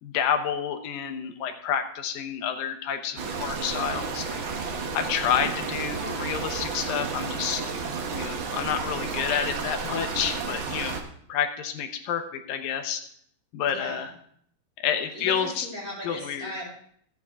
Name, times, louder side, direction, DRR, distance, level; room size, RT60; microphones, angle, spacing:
voice 1, 0.0-4.4 4.9-7.6 8.1-11.0 11.3-13.0 13.5-14.1 14.8-15.7 16.0-16.5, left 8 dB, 85° left, 6 dB, 2.7 m, -29 dB
sound 1, 3.2-11.0, right 5 dB, 75° right, 1.1 m, -32 dB
voice 2, 13.7-14.1 15.1-16.6, equal, 25° right, -4 dB, 5.7 m, -37 dB
13.5 x 9.1 x 3.6 m, 0.64 s
omnidirectional pair, 3.9 m